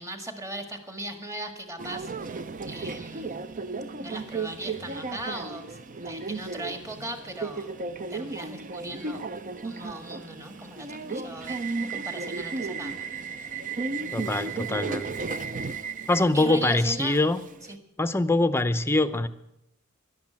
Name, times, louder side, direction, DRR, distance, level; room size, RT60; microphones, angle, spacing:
voice 1, 0.0-3.5 4.0-7.7 8.1-9.3 9.6-12.9 16.3-17.2 17.7-17.8, right 1 dB, 15° right, 6 dB, 1.7 m, -38 dB
Subway metro underground, 1.8-17.7, right 4 dB, 40° right, 0.7 m, -34 dB
voice 2, 14.1-15.1 16.1-17.4 18.0-19.3, left 2 dB, 10° left, 12 dB, 0.7 m, -23 dB
12.0 x 11.5 x 8.9 m, 0.85 s
head